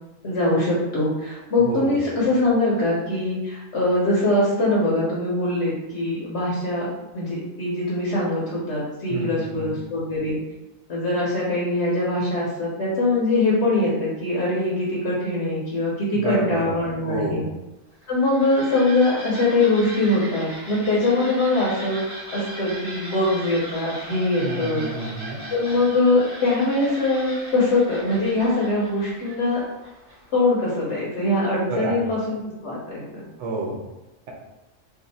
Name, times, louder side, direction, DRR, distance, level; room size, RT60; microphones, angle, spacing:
voice 1, 0.2-6.9 7.1-10.4 10.9-17.5 18.1-22.0 22.3-24.9 25.5-29.6 30.3-33.3, left 2 dB, 60° left, -5 dB, 1.0 m, -22 dB
voice 2, 9.1-9.8 16.1-16.7 17.1-17.5 24.4-25.4 31.7-32.0 33.4-33.8, right 2 dB, 65° right, -1 dB, 0.8 m, -29 dB
sound 1, 17.9-30.5, right 1 dB, 15° left, 0.8 m, -38 dB
2.7 x 2.5 x 4.0 m, 1.0 s
omnidirectional pair, 1.4 m